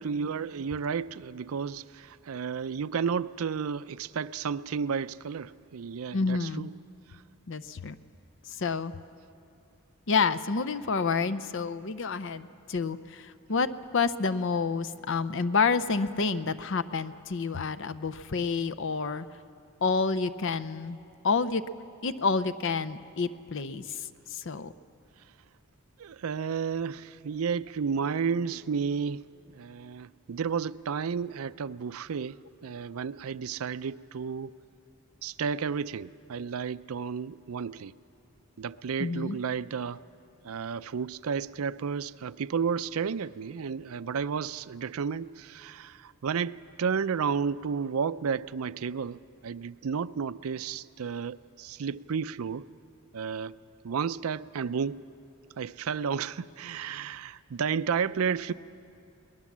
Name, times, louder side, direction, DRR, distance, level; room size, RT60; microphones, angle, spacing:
voice 1, 0.0-6.7 26.0-29.3 29.5-34.5 35.2-37.9 38.6-40.0 40.4-52.7 53.1-53.6 53.8-55.0 55.6-58.5, right 6 dB, 80° right, 16 dB, 0.5 m, -32 dB
voice 2, 6.1-6.7 7.5-8.0 8.4-8.9 10.1-13.7 13.9-19.3 19.8-21.0 21.2-21.6 22.0-24.7 39.0-39.4, left 4 dB, 60° left, 13 dB, 0.6 m, -29 dB
22.5 x 19.0 x 7.3 m, 2.7 s
head